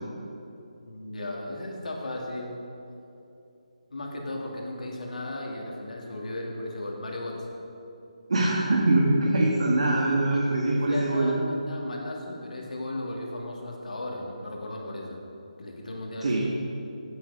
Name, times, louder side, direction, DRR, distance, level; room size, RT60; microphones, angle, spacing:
voice 1, 0.8-2.5 3.9-7.6 10.3-15.2 15.6-16.4, left 1 dB, 85° left, -1 dB, 3.0 m, -36 dB
voice 2, 8.3-11.3 16.2-16.4, right 2 dB, 60° right, -3 dB, 1.9 m, -23 dB
16.0 x 8.4 x 5.2 m, 2.8 s
hypercardioid pair, 175°, 4 cm